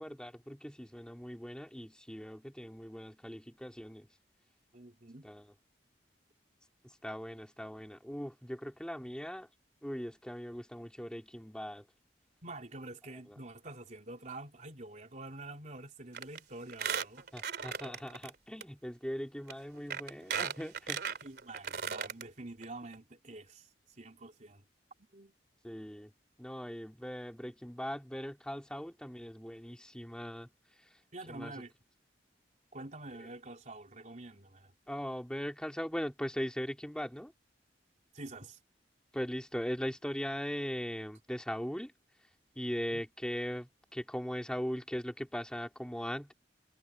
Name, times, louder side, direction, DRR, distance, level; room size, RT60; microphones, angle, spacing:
voice 1, 0.0-4.1 5.2-5.5 6.8-9.5 9.8-11.9 13.3-13.4 17.3-21.0 25.6-26.1 26.4-30.5 30.8-31.0 31.3-31.6 33.1-33.3 34.9-37.3 39.1-41.9 42.5-46.3, equal, 5° left, 2.7 m, -40 dB
voice 2, 4.7-5.3 12.4-17.3 21.2-24.6 25.1-25.3 31.1-31.7 32.7-34.7 38.1-38.6 42.9-43.0, right 2 dB, 45° right, 3.7 m, -47 dB
Squeak, 16.1-16.4 16.7-18.3 18.6-18.7 19.5-19.6 19.9-22.2 22.6-22.7 22.9-23.0, right 7 dB, 60° right, 3.0 m, -36 dB
head